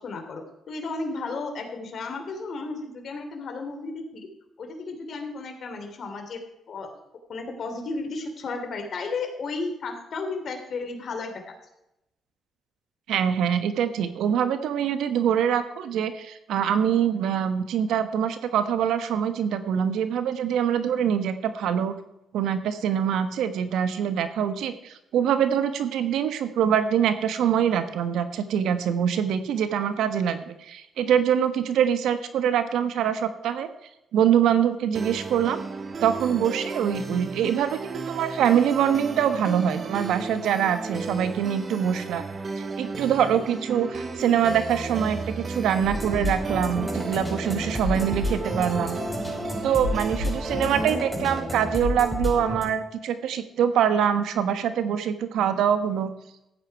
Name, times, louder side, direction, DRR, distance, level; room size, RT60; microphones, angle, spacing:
voice 1, 0.0-4.3 4.6-6.9 7.3-11.4, left 3 dB, 55° left, 5 dB, 3.0 m, -33 dB
voice 2, 13.1-21.9 22.3-33.7 34.1-35.6 36.0-42.2 42.6-49.0 49.6-56.1, right 8 dB, 80° right, 10 dB, 1.2 m, -24 dB
sound 1, 34.9-50.9, right 4 dB, 40° right, 1.3 m, -34 dB
sound 2, 45.8-52.6, left 1 dB, 5° right, 5.3 m, -30 dB
14.5 x 9.3 x 4.7 m, 0.86 s
cardioid pair, 90°, 0 cm